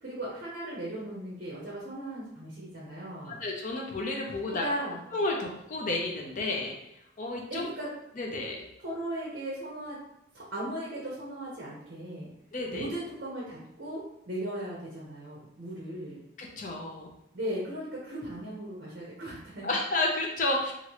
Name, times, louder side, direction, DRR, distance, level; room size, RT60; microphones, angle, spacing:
voice 1, 0.0-3.4 4.6-5.0 7.5-7.9 8.8-10.0 10.3-12.3 12.7-16.2 17.3-19.7, right 1 dB, 50° right, -4 dB, 0.7 m, -37 dB
voice 2, 3.3-4.6 5.1-6.8 7.2-7.6 8.2-8.6 12.5-12.9 16.4-17.1 19.6-20.7, left 2 dB, 40° left, 0 dB, 0.6 m, -31 dB
3.1 x 2.5 x 2.9 m, 0.82 s
head